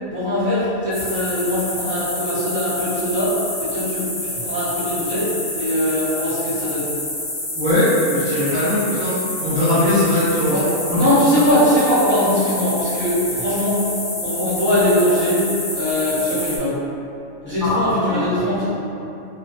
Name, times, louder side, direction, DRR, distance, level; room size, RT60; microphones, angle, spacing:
voice 1, 0.1-6.9 10.5-10.7 10.9-13.8 14.2-15.5 15.7-16.8 17.4-18.7, left 1 dB, 10° left, -15 dB, 0.6 m, -21 dB
sound 1, 0.9-16.6, left 1 dB, 60° left, 0.4 m, -28 dB
voice 2, 7.5-11.1 17.6-18.2, left 1 dB, 35° right, -12 dB, 1.0 m, -20 dB
2.6 x 2.2 x 2.5 m, 2.9 s
omnidirectional pair, 1.5 m